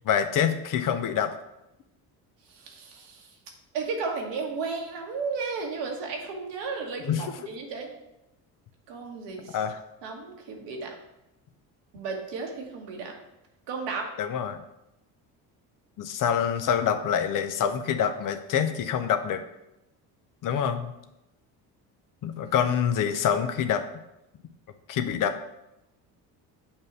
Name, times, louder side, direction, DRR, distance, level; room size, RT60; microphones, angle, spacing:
voice 1, 0.0-1.3 7.0-7.3 9.5-9.8 14.2-14.6 16.0-19.4 20.4-20.9 22.2-23.8 24.9-25.4, left 8 dB, 45° left, 9 dB, 0.7 m, -26 dB
voice 2, 2.5-3.3 3.7-7.9 8.9-9.6 10.0-10.9 11.9-13.2 13.7-14.1, right 4 dB, 70° right, 1 dB, 1.3 m, -34 dB
7.0 x 2.7 x 5.4 m, 0.89 s
hypercardioid pair, 65°, 45 cm